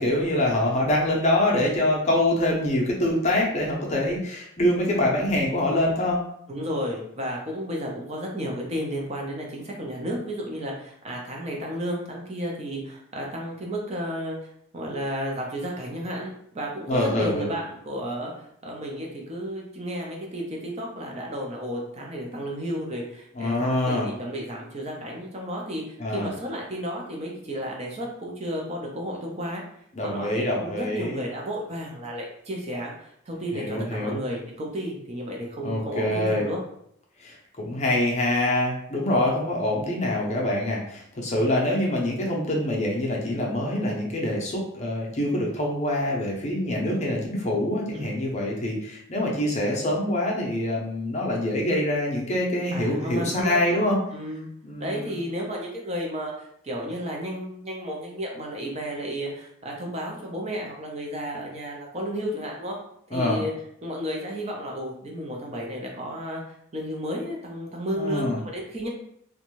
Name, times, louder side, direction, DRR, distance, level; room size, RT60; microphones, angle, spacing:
voice 1, 0.0-6.2 16.9-17.5 23.4-24.1 26.0-26.3 30.0-31.2 33.5-34.2 35.6-36.4 37.2-54.0 54.6-55.2 63.1-63.4 68.0-68.4, left 1 dB, 35° left, -2 dB, 0.6 m, -25 dB
voice 2, 6.5-14.4 14.7-29.6 30.0-36.6 47.9-48.1 52.7-54.5 54.8-62.8 63.1-63.5 63.8-66.4 66.7-68.9, equal, 35° right, -1 dB, 0.5 m, -32 dB
2.5 x 2.2 x 3.0 m, 0.70 s
head